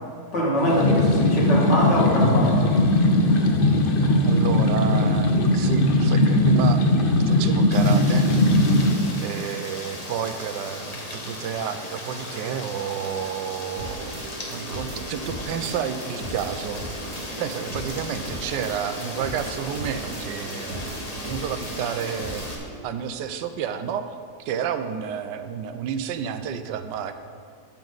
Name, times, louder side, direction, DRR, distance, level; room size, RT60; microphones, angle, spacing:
voice 1, 0.3-2.7, equal, 80° left, -4 dB, 2.8 m, -22 dB
sound 1, 0.6-8.9, left 1 dB, 45° left, 0.7 m, -19 dB
voice 2, 4.2-8.3 9.2-14.1 14.5-16.8 17.4-22.5 22.8-24.1 24.4-27.1, right 8 dB, 85° right, 9 dB, 1.3 m, -30 dB
Rain, 7.7-22.5, left 1 dB, 25° left, 1.1 m, -37 dB
sound 2, 13.8-22.8, right 1 dB, 50° right, 2.1 m, -37 dB
13.5 x 7.3 x 4.0 m, 2.3 s
omnidirectional pair, 1.9 m